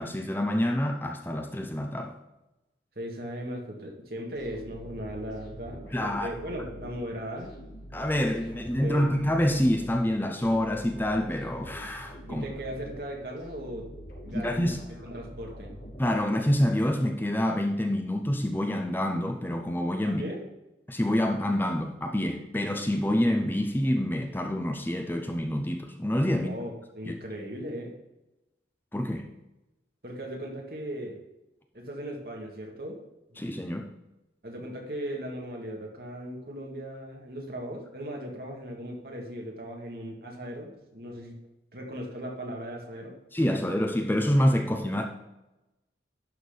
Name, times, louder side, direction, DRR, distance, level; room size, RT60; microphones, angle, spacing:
voice 1, 0.0-2.2 5.9-6.3 7.9-12.4 14.3-14.8 16.0-20.2 20.9-26.5 27.0-27.1 28.9-29.3 33.4-33.9 43.3-45.1, left 1 dB, 10° left, 0.6 m, -27 dB
voice 2, 3.0-7.7 8.8-9.2 12.3-13.9 14.2-14.7 15.0-15.7 20.1-20.4 26.4-27.9 30.0-31.2 31.7-33.0 33.3-33.4 34.4-41.4 41.7-43.2, equal, 55° right, 2.0 m, -38 dB
sound 1, 4.3-16.6, equal, 80° left, 3.6 m, -45 dB
11.5 x 4.3 x 5.1 m
head